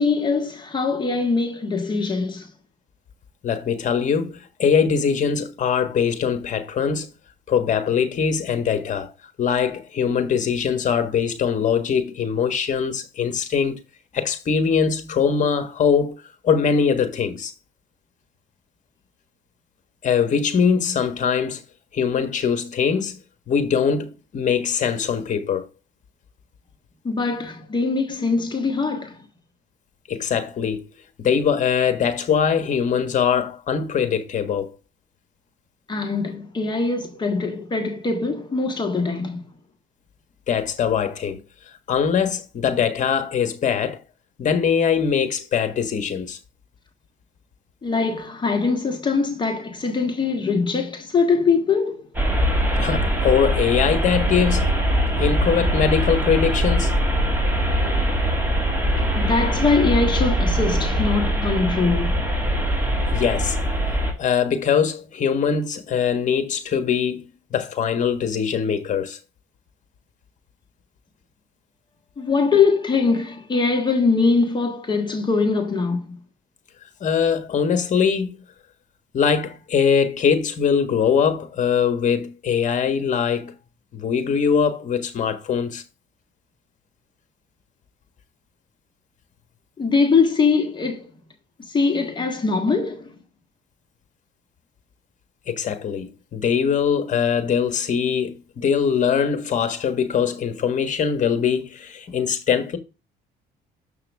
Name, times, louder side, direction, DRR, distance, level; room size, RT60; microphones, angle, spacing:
voice 1, 0.0-2.5 27.0-29.2 35.9-39.4 47.8-52.1 59.1-62.3 72.2-76.2 89.8-91.1 91.7-93.2, left 4 dB, 25° left, 1.4 m, -22 dB
voice 2, 3.4-7.1 7.5-9.1 9.4-13.8 14.1-17.5 20.0-21.6 21.9-23.2 23.5-25.7 30.1-30.9 31.2-34.7 40.5-41.4 41.9-44.0 44.4-46.4 52.8-54.7 55.2-57.0 63.1-63.6 64.2-67.2 67.5-69.2 77.0-78.4 79.1-83.5 83.9-85.8 95.5-102.8, left 7 dB, 45° left, 1.4 m, -22 dB
sound 1, 52.1-64.1, equal, 10° right, 2.3 m, -22 dB
7.2 x 5.8 x 3.4 m
cardioid pair, 110°, 17 cm